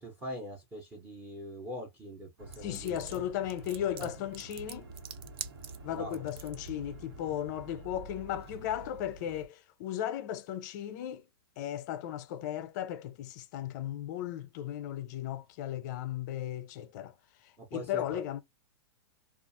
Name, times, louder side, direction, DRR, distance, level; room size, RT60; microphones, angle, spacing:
voice 1, 0.0-3.2 4.0-4.1 5.9-6.2 17.6-18.2, equal, 10° right, 0.7 m, -42 dB
sound 1, 2.4-9.5, right 3 dB, 85° right, 1.2 m, -48 dB
sound 2, 2.5-6.7, right 10 dB, 65° right, 0.4 m, -45 dB
voice 2, 2.6-4.9 5.8-11.3 11.6-17.1 17.4-18.4, left 11 dB, 45° left, 0.4 m, -36 dB
2.4 x 2.3 x 2.6 m
hypercardioid pair, 145°, 14 cm